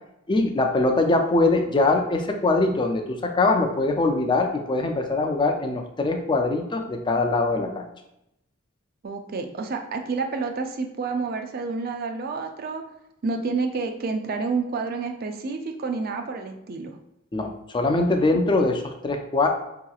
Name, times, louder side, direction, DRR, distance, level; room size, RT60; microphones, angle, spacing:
voice 1, 0.3-7.8 17.3-19.5, left 2 dB, 25° left, 4 dB, 0.4 m, -22 dB
voice 2, 9.0-12.8 13.2-16.9, right 4 dB, 50° right, 5 dB, 0.4 m, -29 dB
4.7 x 2.9 x 2.3 m, 0.83 s
head